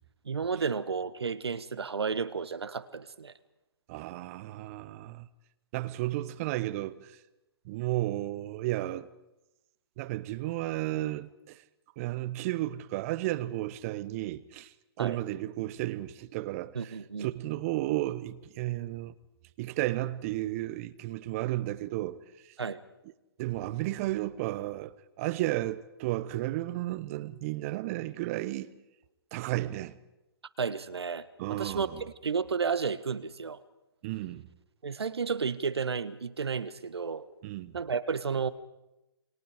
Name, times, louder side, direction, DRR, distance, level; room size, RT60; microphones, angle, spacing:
voice 1, 0.2-3.3 15.0-15.2 16.7-17.3 22.6-22.8 30.6-31.9 32.2-33.6 34.8-37.3 37.7-38.5, right 5 dB, 75° right, 1.5 m, -32 dB
voice 2, 3.9-5.3 5.7-7.2 7.6-9.1 10.0-11.6 12.0-19.1 19.6-22.5 23.4-28.7 29.3-30.0 31.4-32.0 34.0-34.5 37.4-37.8, right 16 dB, 35° right, 1.1 m, -33 dB
28.5 x 22.5 x 5.1 m
figure-of-eight pair, 130°, 13 cm